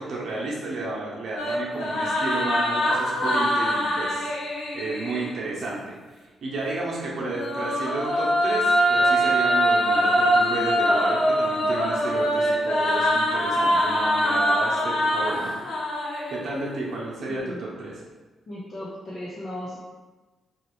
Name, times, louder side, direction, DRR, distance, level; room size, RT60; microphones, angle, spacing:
voice 1, 0.0-6.0 6.4-15.5 16.3-18.0, right 2 dB, 65° right, -4 dB, 0.8 m, -32 dB
sound 1, 1.4-5.4 7.2-16.7, equal, 75° left, 0.6 m, -23 dB
voice 2, 17.2-17.6 18.5-19.8, left 1 dB, 55° left, -10 dB, 0.9 m, -36 dB
2.9 x 2.4 x 3.1 m, 1.2 s
supercardioid pair, 60°, 0 cm